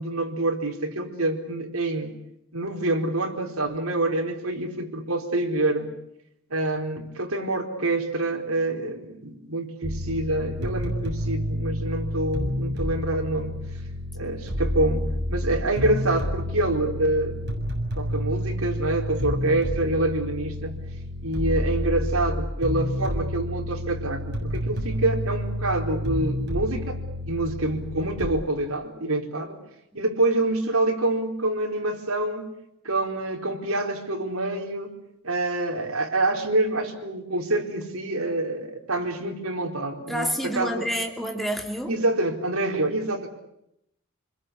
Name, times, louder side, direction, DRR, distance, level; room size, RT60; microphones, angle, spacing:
voice 1, 0.0-2.1 2.5-5.9 6.5-13.6 14.1-17.6 18.0-20.8 21.2-29.6 29.9-32.5 32.8-34.9 35.2-40.8 41.9-43.3, right 2 dB, 80° right, 2 dB, 4.3 m, -26 dB
sound 1, 9.8-28.3, left 1 dB, 50° right, 7.1 m, -29 dB
voice 2, 40.1-41.9, equal, ahead, 2 dB, 2.9 m, -28 dB
28.5 x 21.5 x 8.4 m, 0.80 s
head